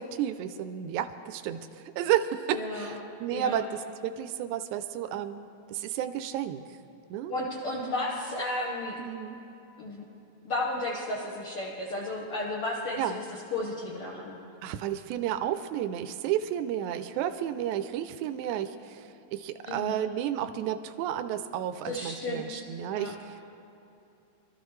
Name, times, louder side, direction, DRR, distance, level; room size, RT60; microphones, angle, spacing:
voice 1, 0.0-2.9 3.2-6.6 7.1-7.3 9.0-9.4 13.0-13.2 14.6-23.5, right 10 dB, 90° right, 9 dB, 2.0 m, -32 dB
voice 2, 2.5-3.0 3.3-3.6 7.3-9.0 9.8-10.0 10.5-14.4 19.7-20.0 21.8-22.6 22.9-23.2, left 2 dB, 55° left, -4 dB, 2.0 m, -33 dB
24.5 x 13.5 x 3.2 m, 2.8 s
omnidirectional pair, 3.3 m